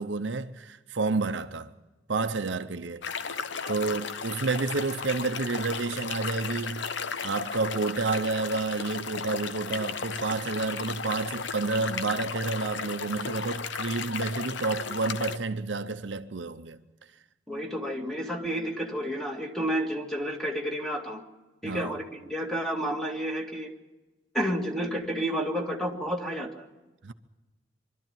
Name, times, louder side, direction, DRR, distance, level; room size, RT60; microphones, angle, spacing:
voice 1, 0.0-1.7 2.1-3.4 3.7-6.9 7.2-16.8 21.6-22.0 27.0-27.1, right 3 dB, 70° right, 0.8 m, -30 dB
sound 1, 3.0-15.4, left 5 dB, 70° left, 0.8 m, -35 dB
voice 2, 17.5-21.2 21.6-23.7 24.3-26.7, equal, ahead, 2.1 m, -30 dB
24.0 x 13.0 x 9.1 m
head